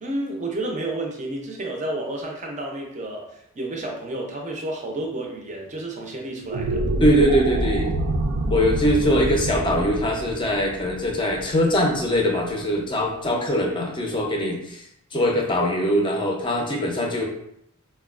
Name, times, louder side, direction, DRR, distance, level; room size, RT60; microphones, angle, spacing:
voice 1, 0.0-6.8, right 1 dB, 35° right, 1 dB, 0.5 m, -31 dB
sound 1, 6.4-12.8, right 1 dB, 85° right, 0.4 m, -27 dB
voice 2, 7.0-7.9 8.5-14.9 15.1-17.2, equal, 20° left, 1 dB, 0.5 m, -22 dB
4.1 x 2.2 x 2.4 m, 0.76 s
head